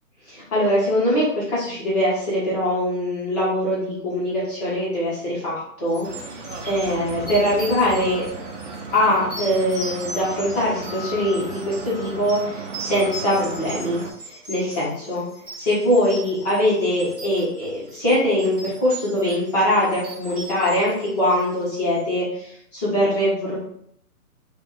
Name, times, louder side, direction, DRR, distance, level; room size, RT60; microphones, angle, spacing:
voice 1, 0.3-6.4 6.6-8.3 8.9-14.0 14.3-15.2 15.6-23.6, equal, 25° left, -8 dB, 1.3 m, -22 dB
sound 1, 5.9-21.8, right 1 dB, 25° right, 1.0 m, -39 dB
sound 2, 6.0-14.1, right 3 dB, 50° right, 0.7 m, -35 dB
3.4 x 2.6 x 4.3 m, 0.71 s
hypercardioid pair, 160°, 46 cm